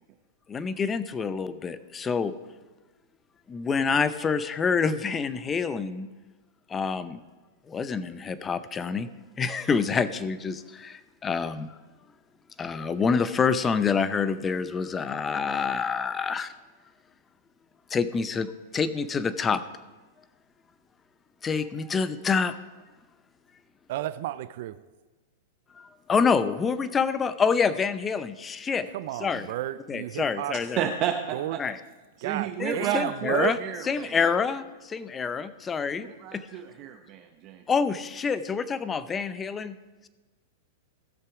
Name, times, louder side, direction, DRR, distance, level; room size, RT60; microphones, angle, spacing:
voice 1, 0.5-2.3 3.5-6.1 6.7-7.2 7.7-9.1 9.4-11.7 12.6-16.5 17.9-19.6 21.4-22.6 25.8-28.9 29.2-29.5 29.9-30.9 31.6-31.8 32.6-33.6 33.9-36.5 37.7-39.8, left 5 dB, 20° left, 14 dB, 0.6 m, -27 dB
voice 2, 23.9-24.8 28.9-30.6 31.3-31.6 32.2-33.6, right 14 dB, 60° right, 13 dB, 0.4 m, -32 dB
voice 3, 30.8-31.6 32.2-34.2 35.9-37.6, right 9 dB, 40° right, 4 dB, 0.8 m, -32 dB
15.5 x 6.7 x 4.9 m, 1.2 s
hypercardioid pair, 130°, 0 cm